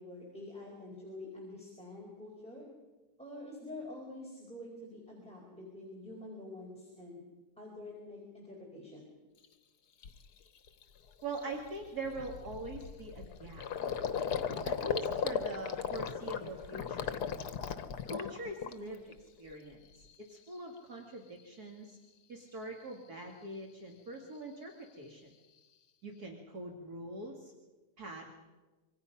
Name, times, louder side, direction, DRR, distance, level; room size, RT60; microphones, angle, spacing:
voice 1, 0.0-2.6 3.2-7.2 7.6-9.1, left 2 dB, 5° left, -2 dB, 4.5 m, -47 dB
Gurgling, 9.4-9.5 10.0-10.3 10.7-10.8 11.1-19.1 19.5-20.1, left 7 dB, 70° left, 1.6 m, -37 dB
voice 2, 11.2-13.7 14.6-17.2 18.0-22.0 22.3-25.3 26.0-27.5 28.0-28.3, right 2 dB, 65° right, 1 dB, 2.6 m, -43 dB
26.0 x 24.5 x 5.7 m, 1.2 s
omnidirectional pair, 1.8 m